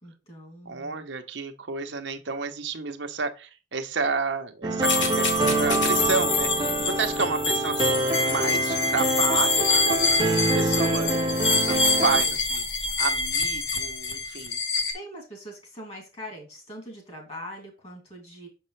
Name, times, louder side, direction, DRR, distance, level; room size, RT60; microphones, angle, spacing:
voice 1, 0.0-1.1 11.5-12.3 14.9-18.5, equal, 35° left, 2.6 m, -42 dB
voice 2, 0.7-10.3 10.5-11.2 11.7-11.8 12.0-12.7 13.0-14.6, right 4 dB, 80° right, 0.8 m, -30 dB
sound 1, 4.6-12.2, right 2 dB, 25° right, 0.7 m, -26 dB
sound 2, 4.8-14.9, left 3 dB, 85° left, 1.4 m, -25 dB
6.5 x 5.4 x 3.2 m
head